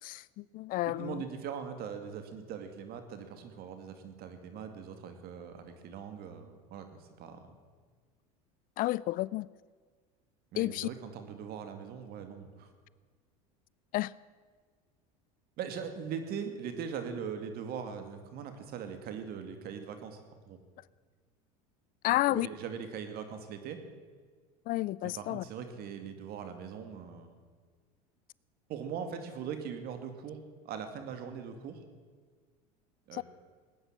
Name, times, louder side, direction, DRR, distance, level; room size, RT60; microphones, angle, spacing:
voice 1, 0.0-1.2 8.8-9.5 10.6-10.9 13.9-14.1 22.0-22.5 24.7-25.4 33.1-33.2, left 17 dB, 45° left, 22 dB, 0.4 m, -31 dB
voice 2, 1.0-6.9 7.2-7.5 10.5-12.7 15.6-20.2 20.5-20.6 22.1-23.8 25.1-27.3 28.7-30.4 30.6-31.8 33.1-33.2, right 7 dB, 55° right, 7 dB, 2.5 m, -41 dB
19.0 x 9.8 x 7.7 m, 1.6 s
hypercardioid pair, 95°, 19 cm